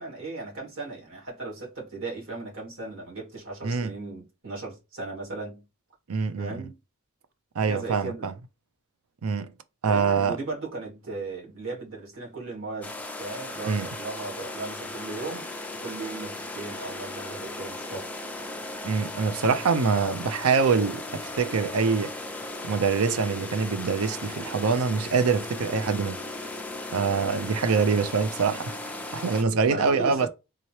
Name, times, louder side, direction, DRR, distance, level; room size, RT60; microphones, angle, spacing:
voice 1, 0.0-5.6 6.4-6.8 7.6-8.3 9.9-18.1 29.7-30.3, right 3 dB, 60° right, 2.1 m, -37 dB
voice 2, 3.6-3.9 6.1-6.7 7.5-8.3 9.2-9.5 9.8-10.4 13.6-13.9 18.8-22.2 22.6-26.2 26.9-30.3, right 5 dB, 85° right, 0.5 m, -25 dB
sound 1, 12.8-29.4, left 2 dB, 5° left, 0.4 m, -37 dB
3.7 x 2.8 x 3.0 m
head